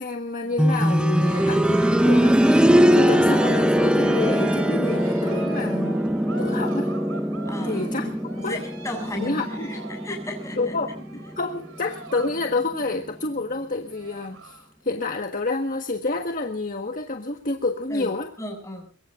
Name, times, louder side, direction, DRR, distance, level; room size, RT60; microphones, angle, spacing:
voice 1, 0.0-6.0 6.4-6.9 7.6-8.0 8.4-8.6 9.1-9.7 10.6-10.9 11.4-18.3, left 3 dB, 40° left, 4 dB, 1.5 m, -28 dB
sound 1, 0.6-11.4 12.7-12.8, equal, 5° right, 0.7 m, -21 dB
Cheering, 1.1-12.4 12.7-13.1 13.6-13.7 13.8-14.7, right 3 dB, 65° right, 4.1 m, -41 dB
voice 2, 7.4-7.8 8.3-10.7 17.9-18.1 18.4-18.9, left 1 dB, 15° left, 2 dB, 7.2 m, -35 dB
23.5 x 23.0 x 2.6 m, 0.40 s
head